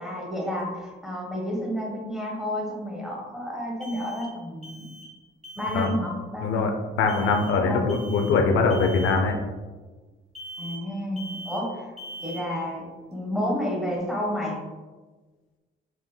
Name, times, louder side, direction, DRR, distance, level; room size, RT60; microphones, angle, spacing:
voice 1, 0.0-4.9 5.6-6.7 7.2-7.3 7.6-8.1 10.6-11.9 12.2-14.6, equal, ahead, -2 dB, 1.1 m, -31 dB
sound 1, 0.5-0.6 3.8-5.2 5.4-5.9 7.1-7.6 7.9-8.4 8.7-9.2 10.3-10.9 11.2-11.7 12.0-12.5, right 1 dB, 35° right, 1.2 m, -41 dB
voice 2, 7.0-9.4, left 4 dB, 85° left, 4 dB, 0.5 m, -22 dB
4.6 x 3.5 x 2.2 m, 1.3 s
cardioid pair, 90°, 20 cm